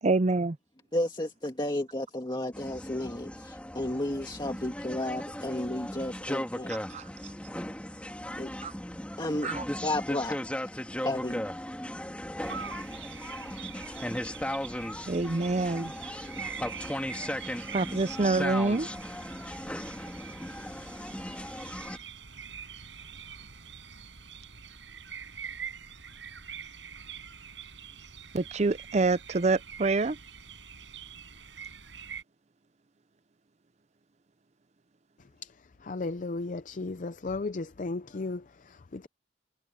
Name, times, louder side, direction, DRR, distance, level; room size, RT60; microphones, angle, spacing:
voice 1, 0.0-0.6 6.7-7.1 8.6-8.7 9.4-9.7 15.1-15.9 17.7-18.9 28.3-30.2, right 3 dB, 35° right, 0.6 m, -26 dB
voice 2, 0.9-6.7 8.4-8.5 9.2-9.5 9.8-10.7 11.0-11.4, left 1 dB, 25° left, 2.1 m, -32 dB
sound 1, 2.5-22.0, left 1 dB, 5° left, 2.1 m, -37 dB
sound 2, 12.4-32.2, right 7 dB, 75° right, 7.0 m, -44 dB
voice 3, 35.8-39.1, left 3 dB, 45° left, 0.5 m, -35 dB
head